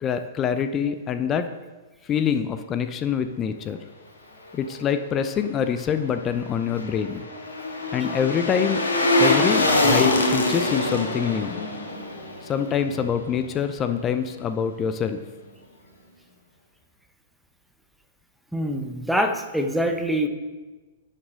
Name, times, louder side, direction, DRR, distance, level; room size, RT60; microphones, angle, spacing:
voice 1, 0.0-1.5 2.1-3.8 4.5-7.2 7.9-8.9 9.2-11.5 12.5-15.2, left 7 dB, 25° left, 10 dB, 0.6 m, -25 dB
sound 1, 6.3-13.5 13.9-14.0, left 2 dB, 75° left, 1.8 m, -24 dB
voice 2, 18.5-20.3, equal, ahead, 4 dB, 1.0 m, -24 dB
11.5 x 7.7 x 3.8 m, 1.2 s
figure-of-eight pair, 105°, 0 cm